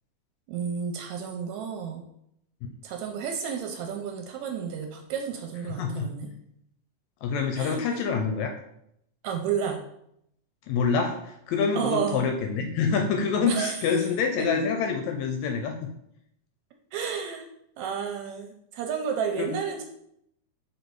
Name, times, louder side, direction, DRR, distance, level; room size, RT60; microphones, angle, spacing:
voice 1, 0.5-2.1 2.8-6.3 7.6-7.8 9.2-9.8 11.8-12.2 13.5-13.8 16.9-17.4 17.8-19.8, right 7 dB, 80° right, 4 dB, 1.8 m, -31 dB
voice 2, 7.2-8.5 10.7-15.9 19.4-19.5, left 5 dB, 75° left, 5 dB, 1.8 m, -26 dB
5.3 x 4.2 x 4.6 m, 0.75 s
omnidirectional pair, 3.6 m